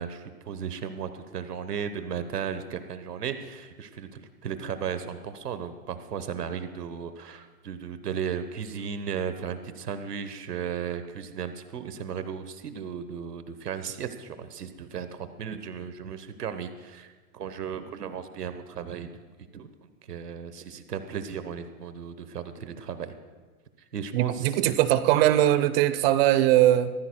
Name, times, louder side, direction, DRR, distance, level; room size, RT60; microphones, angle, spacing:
voice 1, 0.0-19.1 19.5-19.7 20.1-23.1 23.9-24.8, right 7 dB, 90° right, 10 dB, 1.2 m, -35 dB
voice 2, 24.1-26.9, right 13 dB, 40° right, 13 dB, 0.8 m, -21 dB
24.0 x 15.0 x 2.3 m, 1.4 s
hypercardioid pair, 130°, 46 cm